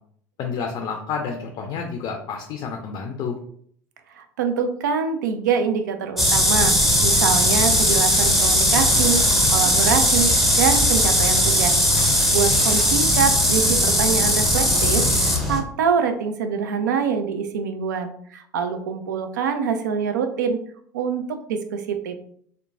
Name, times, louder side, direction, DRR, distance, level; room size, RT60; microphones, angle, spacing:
voice 1, 0.4-3.4, left 5 dB, 45° left, 3 dB, 0.4 m, -29 dB
voice 2, 4.1-6.8 7.0-9.2 9.5-10.3 10.6-11.7 12.3-20.6 20.9-22.1, right 6 dB, 75° right, 8 dB, 0.4 m, -25 dB
sound 1, 6.2-15.6, equal, ahead, 0.6 m, -18 dB
2.9 x 2.1 x 2.5 m, 0.63 s
figure-of-eight pair, 70°, 10 cm